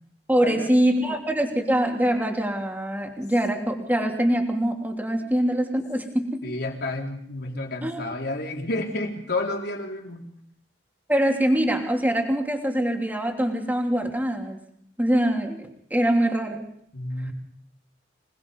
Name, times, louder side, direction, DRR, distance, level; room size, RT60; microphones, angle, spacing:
voice 1, 0.3-6.4 7.8-8.0 11.1-14.6 15.0-15.6 15.9-16.7, right 1 dB, 10° right, 2 dB, 3.0 m, -23 dB
voice 2, 6.4-10.3 16.9-17.3, left 2 dB, 60° left, 1 dB, 4.1 m, -30 dB
26.0 x 20.0 x 5.5 m, 0.67 s
head